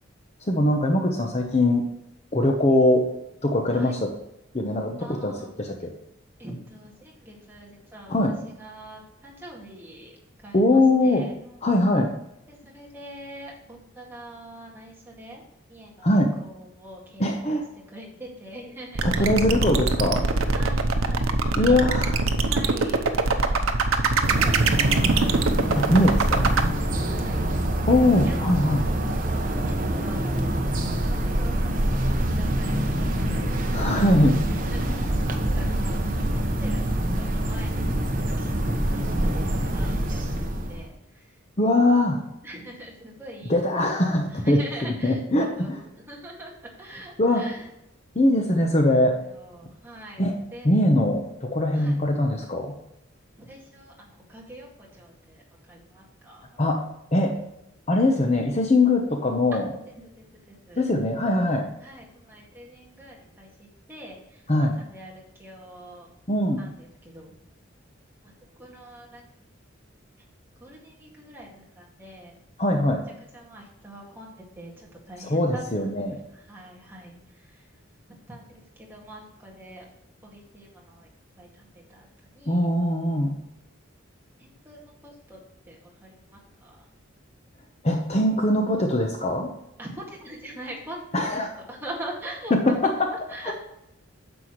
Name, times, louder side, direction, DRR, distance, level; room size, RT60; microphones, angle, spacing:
voice 1, 0.4-1.8 2.3-3.1 3.4-4.1 4.5-5.9 8.1-8.4 10.5-11.3 11.6-12.1 16.0-16.3 17.2-17.7 19.0-20.3 21.6-22.3 25.7-26.5 27.9-28.9 33.7-34.4 34.9-35.0 41.6-42.2 43.4-45.8 47.2-47.5 48.1-49.2 50.2-50.4 50.6-52.7 56.6-56.8 57.1-57.4 57.9-59.7 60.8-61.7 64.5-64.8 66.3-66.7 72.6-73.0 75.2-76.2 82.5-83.4 87.8-89.5 91.1-91.5 92.5-93.1 93.4-93.5, left 1 dB, 30° left, 2 dB, 0.9 m, -22 dB
voice 2, 5.0-5.5 6.4-8.2 8.5-10.1 10.4-11.6 12.5-15.4 15.7-17.2 17.5-17.6 17.9-19.3 20.5-22.1 22.5-23.0 23.3-23.8 24.1-25.3 27.1-27.5 28.2-28.8 29.6-31.7 32.1-33.5 34.5-35.2 35.5-36.0 36.6-38.0 38.4-38.5 38.9-41.3 42.4-45.7 46.1-46.5 46.8-47.6 49.2-50.2 50.5-50.8 51.7-52.0 53.4-55.4 55.7-56.6 59.5-59.6 60.2-60.8 61.8-64.4 64.8-66.1 66.6-66.7 67.0-67.3 68.2-68.3 68.6-69.2 70.6-72.4 73.3-75.9 76.3-77.2 77.4-77.6 78.3-79.8 80.2-81.1 81.4-82.1 82.3-82.6 84.4-85.4 85.7-86.8 89.8-91.0 91.7-92.5 92.8-92.9 93.3-93.5, right 1 dB, 10° right, -3 dB, 2.0 m, -43 dB
sound 1, 18.9-26.7, right 3 dB, 85° right, 0.8 m, -23 dB
sound 2, 24.2-40.9, right 1 dB, 40° right, 1.0 m, -25 dB
9.8 x 6.9 x 3.1 m, 0.84 s
head